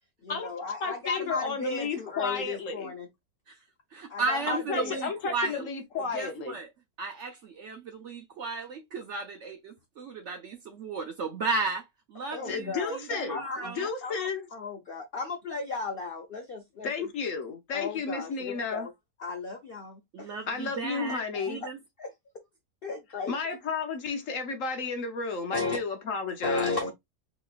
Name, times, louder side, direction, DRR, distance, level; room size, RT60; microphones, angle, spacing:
voice 1, 0.2-3.1 4.1-5.0 12.3-16.9 17.7-18.9 19.2-20.3 21.3-21.5 22.0-22.1 22.8-23.3 25.5-25.8 26.4-26.9, left 4 dB, 75° left, 0.5 m, -35 dB
voice 2, 0.8-2.9 4.5-6.6 12.5-14.5 16.8-18.9 20.5-21.6 23.3-26.8, left 4 dB, 60° left, 1.0 m, -33 dB
voice 3, 3.9-5.7 6.1-6.7 7.0-13.9 20.1-21.8, right 3 dB, 65° right, 0.7 m, -34 dB
4.0 x 3.0 x 2.3 m
omnidirectional pair, 1.7 m